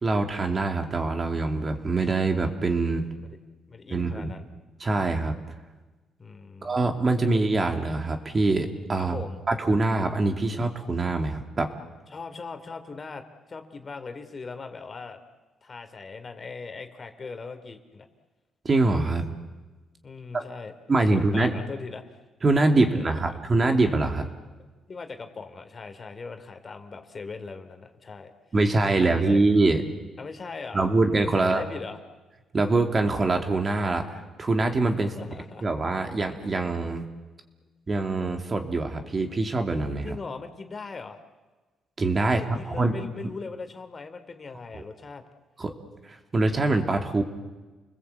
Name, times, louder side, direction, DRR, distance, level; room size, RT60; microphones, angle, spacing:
voice 1, 0.0-3.0 3.9-4.3 4.8-5.4 6.6-11.7 18.6-19.2 20.3-20.5 20.9-21.5 22.4-24.3 28.5-29.8 30.7-31.6 32.5-35.2 35.6-37.1 37.9-40.1 42.0-42.9 44.7-44.8 45.6-45.7 46.0-47.2, right 2 dB, 35° right, 5 dB, 2.9 m, -24 dB
voice 2, 3.7-4.5 6.2-6.9 9.0-9.4 12.1-13.2 13.5-15.2 15.6-18.1 20.0-20.7 21.1-22.0 22.9-23.4 24.9-28.3 28.9-29.4 30.2-30.9 31.3-32.0 35.0-35.6 40.0-41.2 42.2-45.2, left 4 dB, 35° left, 8 dB, 2.9 m, -39 dB
30.0 x 20.0 x 8.4 m, 1.2 s
cardioid pair, 90°, 0 cm